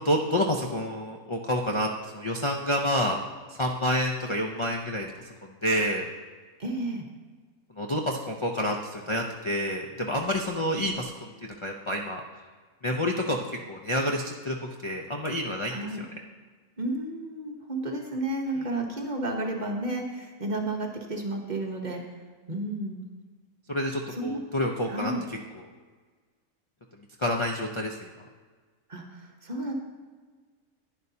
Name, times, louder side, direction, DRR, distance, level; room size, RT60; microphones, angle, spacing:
voice 1, 0.0-3.2 3.5-5.1 5.4-6.1 7.8-11.3 11.6-12.2 12.8-14.6 14.8-15.9 18.6-18.7 23.7-25.7 27.2-28.1, equal, 45° left, 1 dB, 0.3 m, -28 dB
voice 2, 6.6-7.0 15.7-16.0 16.8-22.0 22.5-23.0 24.2-24.4 24.9-25.2 28.9-29.0 29.4-29.7, right 2 dB, 35° right, 1 dB, 1.1 m, -32 dB
11.0 x 10.0 x 2.8 m, 1.5 s
omnidirectional pair, 1.5 m